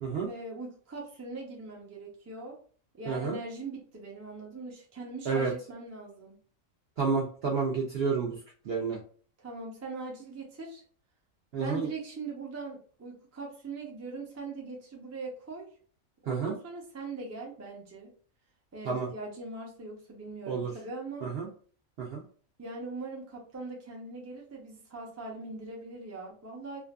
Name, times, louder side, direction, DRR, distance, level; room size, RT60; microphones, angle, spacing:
voice 1, 0.2-2.6 2.9-6.4 9.4-10.8 11.6-15.7 16.2-18.1 18.7-21.3 22.6-26.8, right 3 dB, 25° right, -2 dB, 0.3 m, -41 dB
voice 2, 3.1-3.4 5.3-5.5 7.0-8.4 8.7-9.0 11.5-11.9 16.3-16.5 18.9-19.1 20.5-20.7 21.2-21.5 22.0-22.2, right 5 dB, 65° right, -2 dB, 0.6 m, -30 dB
2.5 x 2.4 x 2.2 m, 0.44 s
omnidirectional pair, 1.5 m